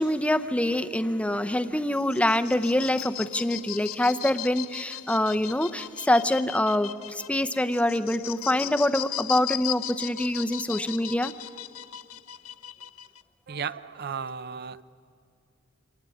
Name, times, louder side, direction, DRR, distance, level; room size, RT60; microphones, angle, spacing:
voice 1, 0.0-11.3, left 1 dB, 5° left, 9 dB, 0.6 m, -25 dB
sound 1, 1.9-13.2, left 13 dB, 85° left, 0.6 m, -37 dB
voice 2, 13.5-14.8, right 6 dB, 50° right, 16 dB, 0.6 m, -34 dB
25.5 x 19.5 x 9.8 m, 2.5 s
head